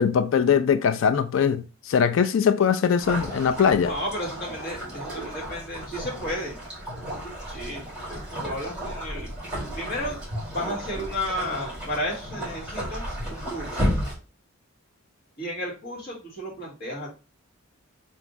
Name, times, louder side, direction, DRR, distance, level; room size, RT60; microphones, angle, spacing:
voice 1, 0.0-3.9, left 7 dB, 70° left, 0.3 m, -21 dB
sound 1, 3.0-14.1, equal, 5° right, 2.0 m, -33 dB
voice 2, 3.8-6.6 7.5-9.3 9.7-13.0 13.3-13.9 15.4-17.1, equal, 50° left, 1.7 m, -33 dB
3.5 x 2.6 x 4.0 m
head